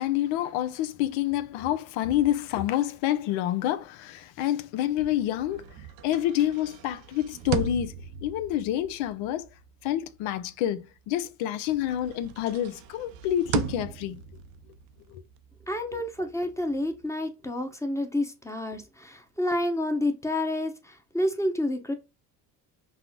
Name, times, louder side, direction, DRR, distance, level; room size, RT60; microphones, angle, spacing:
voice 1, 0.0-5.7 6.0-7.9 8.2-9.5 9.8-14.2 15.1-15.2 15.9-16.0, left 12 dB, 75° left, 0.6 m, -28 dB
sound 1, 4.9-11.3 11.7-17.1, right 8 dB, 70° right, 0.6 m, -38 dB
voice 2, 15.7-21.9, left 1 dB, 5° left, 0.8 m, -29 dB
5.5 x 2.0 x 2.2 m
supercardioid pair, 70°, 48 cm